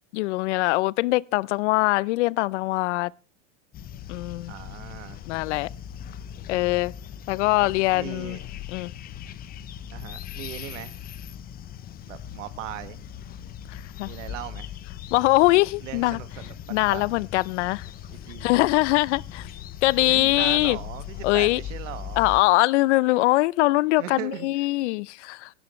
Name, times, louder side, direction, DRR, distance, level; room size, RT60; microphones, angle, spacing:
voice 1, 0.1-3.1 4.1-4.5 5.3-5.7 6.5-6.9 7.3-8.4 8.7-8.9 13.7-14.1 15.1-16.2 16.7-17.9 18.4-19.5 19.8-20.8 21.2-21.6 22.2-25.5, left 20 dB, 65° left, 0.7 m, -22 dB
sound 1, 3.7-22.4, left 10 dB, 25° left, 0.7 m, -39 dB
voice 2, 4.5-5.2 7.6-8.4 9.9-11.0 12.1-13.0 14.0-14.7 15.8-17.1 18.3-18.5 19.9-22.3 24.0-24.5, right 14 dB, 70° right, 1.8 m, -38 dB
17.5 x 12.5 x 3.2 m
supercardioid pair, 140°, 38 cm